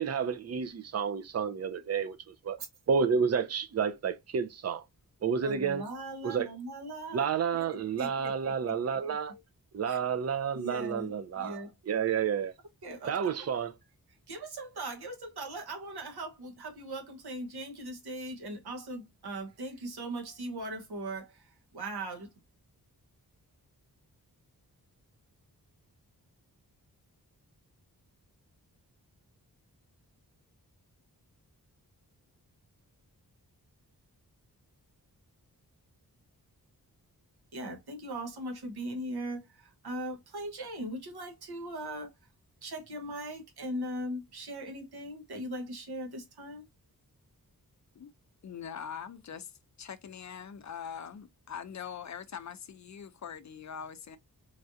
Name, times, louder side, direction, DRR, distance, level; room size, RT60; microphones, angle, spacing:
voice 1, 0.0-2.2 2.4-2.6 2.9-4.8 5.2-5.8 6.2-6.5 7.1-9.3 9.7-12.5 13.1-13.7, right 6 dB, 45° right, 0.5 m, -30 dB
voice 2, 5.4-7.3 7.5-9.4 9.9-10.0 10.5-11.7 12.8-13.5 14.3-22.3 37.5-42.1 42.6-46.6, right 1 dB, 90° right, 1.0 m, -40 dB
voice 3, 48.4-49.5 49.8-54.2, left 7 dB, 50° left, 0.4 m, -42 dB
3.2 x 2.4 x 2.5 m
wide cardioid pair, 110°, 37 cm